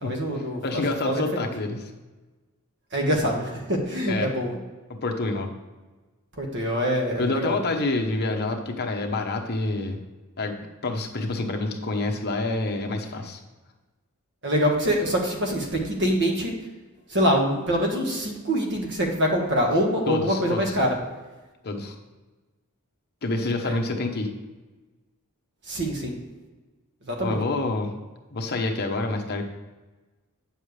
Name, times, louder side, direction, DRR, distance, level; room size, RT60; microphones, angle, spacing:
voice 1, 0.0-1.5 2.9-4.6 6.4-7.7 14.4-16.5 17.1-20.9 23.6-23.8 25.7-26.1 27.1-27.4, equal, 55° right, 1 dB, 1.6 m, -25 dB
voice 2, 0.6-1.8 4.1-4.3 4.9-5.5 7.2-10.0 10.4-10.6 10.8-13.4 20.1-20.8 21.6-21.9 23.2-24.3 27.2-27.9 28.3-29.4, left 2 dB, 45° left, 3 dB, 1.0 m, -27 dB
8.7 x 7.2 x 3.3 m, 1.2 s
head